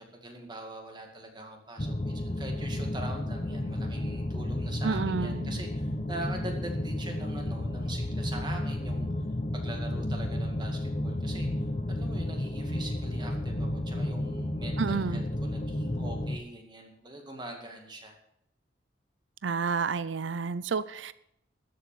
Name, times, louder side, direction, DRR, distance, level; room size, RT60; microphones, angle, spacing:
voice 1, 0.0-9.1 9.5-18.1, right 1 dB, 25° right, 2.1 m, -43 dB
sound 1, 1.8-16.4, left 1 dB, 35° left, 0.8 m, -32 dB
voice 2, 4.8-5.6 14.8-15.3 19.4-21.1, right 5 dB, 80° right, 0.5 m, -30 dB
13.0 x 7.8 x 6.9 m
head